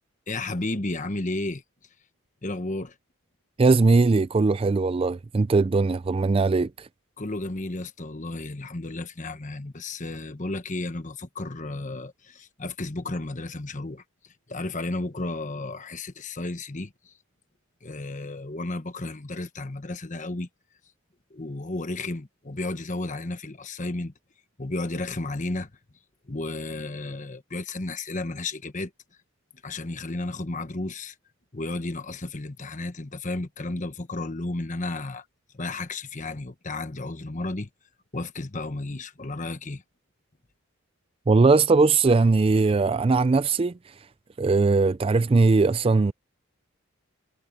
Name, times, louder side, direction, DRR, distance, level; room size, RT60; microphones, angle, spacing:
voice 1, 0.3-1.6 2.4-2.9 7.2-14.0 14.5-17.1 17.8-20.5 21.3-24.1 24.6-25.7 26.3-28.9 29.6-31.1 31.5-35.2 35.5-37.7 38.1-39.8, left 2 dB, 35° left, 1.2 m, -33 dB
voice 2, 3.6-6.9 41.3-43.7 44.4-46.1, right 3 dB, 25° right, 0.3 m, -20 dB
head